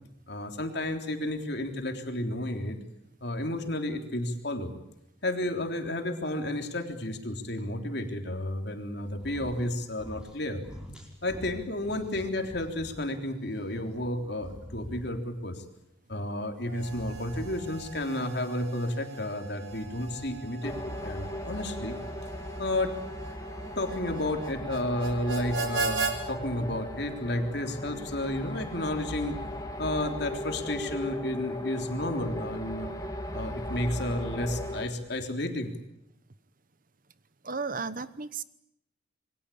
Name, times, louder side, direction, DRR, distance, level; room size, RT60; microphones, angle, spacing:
voice 1, 0.3-2.8 3.2-4.7 5.2-10.6 11.2-15.6 16.1-22.0 22.6-23.0 23.8-29.4 29.8-32.9 33.3-35.7, left 1 dB, 55° left, 5 dB, 3.5 m, -32 dB
sound 1, 9.1-9.7 9.9-10.4 10.6-13.0 13.4-15.4 16.7-18.1 19.6-20.6, equal, 5° right, 5.2 m, -45 dB
Harmonica, 16.6-26.2, right 4 dB, 70° right, 4.5 m, -38 dB
sound 2, 20.6-34.9, left 1 dB, 20° left, 2.7 m, -37 dB
voice 2, 37.4-38.4, right 4 dB, 45° right, 14 dB, 1.0 m, -34 dB
27.5 x 23.0 x 8.7 m, 0.82 s
head